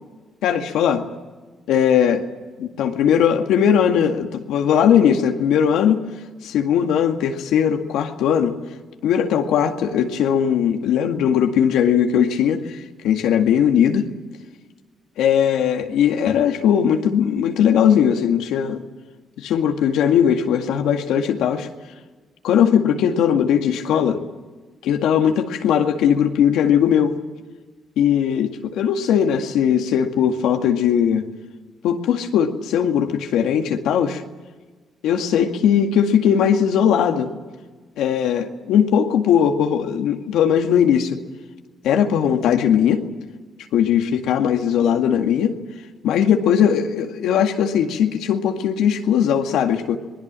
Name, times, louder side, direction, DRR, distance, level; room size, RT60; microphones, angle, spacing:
voice 1, 0.4-1.0 1.7-2.2 2.6-6.0 6.4-8.6 9.0-14.1 15.2-18.8 19.4-21.7 22.4-24.2 24.8-27.2 28.0-31.3 31.8-34.2 35.0-37.3 38.0-41.2 41.8-43.0 43.7-45.5 46.0-50.0, left 8 dB, 85° left, 4 dB, 2.0 m, -19 dB
26.5 x 20.5 x 7.6 m, 1.3 s
cardioid pair, 90°, 0 cm